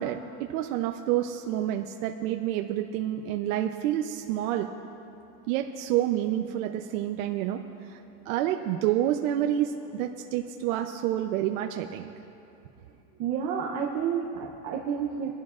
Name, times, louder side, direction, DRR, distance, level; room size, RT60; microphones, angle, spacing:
voice 1, 0.0-4.7 5.5-7.6 7.9-8.0 8.3-12.1, right 12 dB, 60° right, 4 dB, 0.7 m, -28 dB
voice 2, 13.2-15.3, right 7 dB, 35° right, -1 dB, 0.7 m, -30 dB
23.5 x 11.5 x 2.5 m, 2.9 s
supercardioid pair, 170°, 48 cm